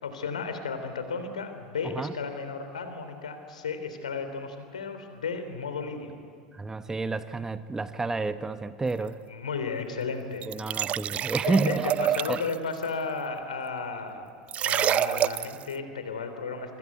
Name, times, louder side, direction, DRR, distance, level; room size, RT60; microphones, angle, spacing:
voice 1, 0.0-6.2 9.3-10.9 11.5-14.3 14.6-16.8, left 4 dB, 70° left, 8 dB, 3.4 m, -34 dB
voice 2, 6.5-9.2 10.5-11.9 12.3-12.4, right 3 dB, 15° right, 12 dB, 1.0 m, -30 dB
sound 1, 10.4-12.5 14.5-15.6, right 11 dB, 35° right, 0.6 m, -27 dB
26.5 x 25.0 x 8.2 m, 2.3 s
figure-of-eight pair, 75°, 4 cm